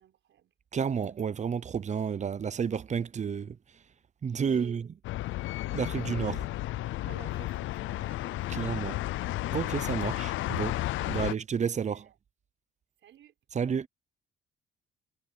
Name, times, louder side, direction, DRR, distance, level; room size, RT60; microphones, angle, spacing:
voice 1, 0.0-0.5 4.3-4.9 5.7-8.7 11.0-11.3 11.9-12.2 13.0-13.3, right 11 dB, 70° right, 5.8 m, -53 dB
voice 2, 0.7-3.6 4.2-4.9 5.7-6.4 8.5-9.0 9.5-10.8 11.1-12.0 13.5-13.9, right 7 dB, 35° right, 0.7 m, -31 dB
sound 1, 5.0-11.3, left 16 dB, 80° left, 0.5 m, -33 dB
cardioid pair, 90°, 20 cm